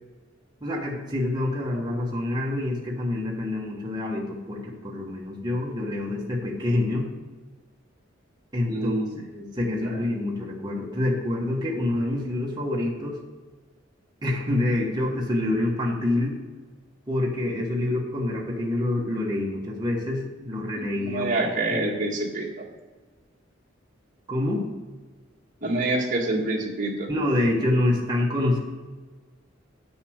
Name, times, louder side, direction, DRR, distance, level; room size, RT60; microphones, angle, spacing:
voice 1, 0.6-7.1 8.5-9.0 9.3-13.2 14.2-16.4 17.1-21.8 24.3-24.7 27.1-28.6, left 1 dB, 20° right, -2 dB, 1.5 m, -27 dB
voice 2, 8.7-9.2 9.7-10.0 21.0-22.6 25.6-27.1, right 2 dB, 45° right, -3 dB, 1.7 m, -27 dB
8.4 x 7.1 x 6.4 m, 1.3 s
head